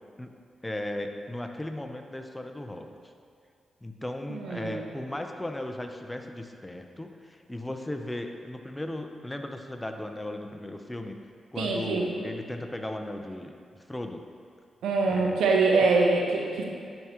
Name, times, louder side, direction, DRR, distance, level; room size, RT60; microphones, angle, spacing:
voice 1, 0.6-3.0 3.8-11.2 11.5-14.2 15.1-15.4, left 1 dB, 15° left, 5 dB, 0.6 m, -36 dB
voice 2, 4.3-4.9 11.6-12.3 14.8-16.6, right 3 dB, 90° right, 0 dB, 0.8 m, -24 dB
10.5 x 4.8 x 3.0 m, 2.3 s
cardioid pair, 55°, 0 cm